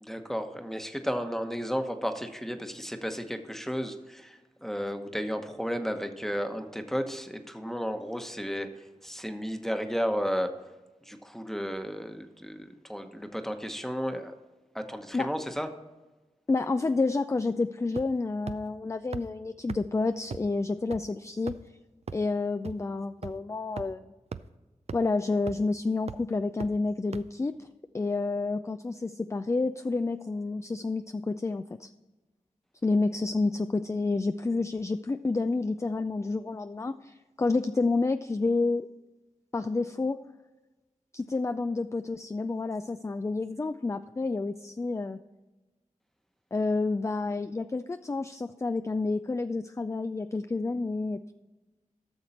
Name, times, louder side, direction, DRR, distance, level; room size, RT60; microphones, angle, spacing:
voice 1, 0.0-8.7 9.0-10.5 11.1-14.3 14.7-15.7, equal, 5° left, 6 dB, 1.1 m, -33 dB
voice 2, 16.5-21.6 22.1-24.1 24.9-27.7 27.9-31.9 32.8-38.9 39.5-40.2 41.1-45.2 46.5-51.3, left 3 dB, 20° left, 10 dB, 0.3 m, -29 dB
sound 1, 18.0-18.2 18.5-18.6 19.1-19.2 19.7-19.8 20.3-20.4 20.9-21.0 21.5-21.7 22.1-22.2 22.6-22.7 23.2-23.3 23.8-23.9 24.3-24.4 24.9-25.0 25.5-25.7 26.1-26.2 26.6-26.7 27.1-27.2, right 6 dB, 50° right, 0.4 m, -37 dB
12.5 x 6.5 x 4.2 m, 1.1 s
cardioid pair, 45°, 13 cm